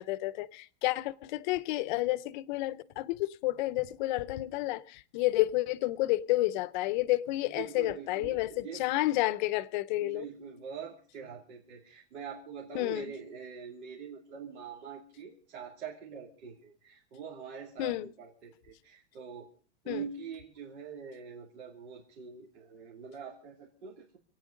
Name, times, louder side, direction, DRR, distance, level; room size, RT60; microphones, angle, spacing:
voice 1, 0.0-10.3 12.7-13.1 17.8-18.1 19.9-20.0, left 17 dB, 45° left, 0.7 m, -30 dB
voice 2, 7.5-8.9 10.0-19.5 19.8-24.2, right 7 dB, 80° right, 2.9 m, -44 dB
27.0 x 9.2 x 5.1 m
supercardioid pair, 155°, 33 cm